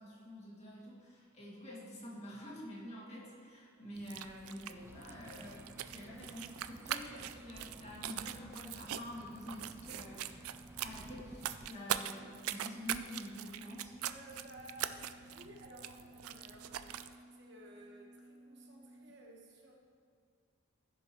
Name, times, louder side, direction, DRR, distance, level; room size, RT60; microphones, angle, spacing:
voice 1, 0.0-10.5 10.8-13.9, left 1 dB, 30° left, -6 dB, 2.2 m, -48 dB
sound 1, 2.9-19.1, right 1 dB, 50° left, 1.9 m, -59 dB
sound 2, 3.9-17.1, right 11 dB, 85° right, 0.4 m, -43 dB
sound 3, 4.8-11.7, right 1 dB, 10° right, 0.3 m, -56 dB
voice 2, 14.0-19.8, right 1 dB, 55° right, 0 dB, 1.3 m, -55 dB
15.0 x 6.8 x 3.1 m, 2.3 s
head